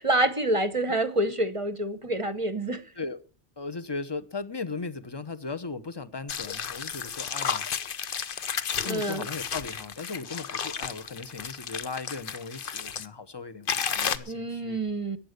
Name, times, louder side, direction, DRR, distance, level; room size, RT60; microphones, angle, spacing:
voice 1, 0.0-2.8 8.9-9.3 14.3-15.2, right 1 dB, 30° right, 0.9 m, -27 dB
voice 2, 3.6-7.7 8.8-14.8, left 4 dB, 25° left, 0.8 m, -37 dB
sound 1, 6.3-13.1 13.7-14.2, left 7 dB, 50° left, 0.9 m, -32 dB
14.5 x 9.8 x 6.6 m
omnidirectional pair, 1.2 m